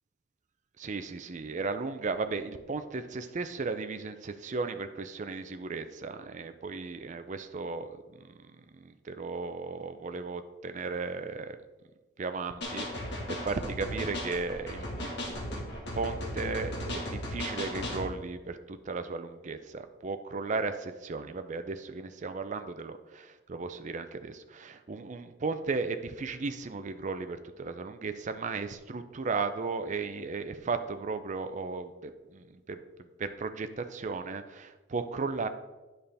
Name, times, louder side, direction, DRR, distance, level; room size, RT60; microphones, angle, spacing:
voice 1, 0.8-7.9 8.2-8.3 8.7-11.6 12.2-32.8 33.2-35.5, right 4 dB, 40° right, 9 dB, 0.5 m, -35 dB
sound 1, 12.6-18.1, left 1 dB, 60° left, 1.7 m, -36 dB
9.0 x 5.5 x 3.4 m, 1.2 s
head